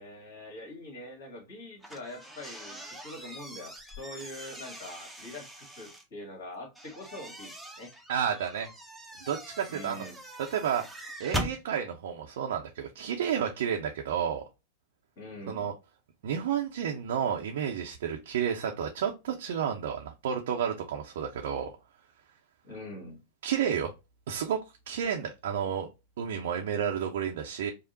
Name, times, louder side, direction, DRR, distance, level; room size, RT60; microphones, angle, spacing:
voice 1, 0.0-7.9 9.7-10.2 15.2-15.7 22.6-23.2, left 1 dB, 55° left, 1.6 m, -44 dB
sound 1, 1.8-6.0 6.8-11.6, equal, ahead, 0.7 m, -41 dB
voice 2, 8.1-8.7 9.2-10.0 10.5-10.8 11.2-14.4 15.5-15.7 16.2-21.7 23.4-23.9 24.3-24.6 24.9-25.9 26.2-27.7, right 8 dB, 60° right, 0.6 m, -31 dB
5.1 x 2.1 x 2.6 m
figure-of-eight pair, 90°, 0 cm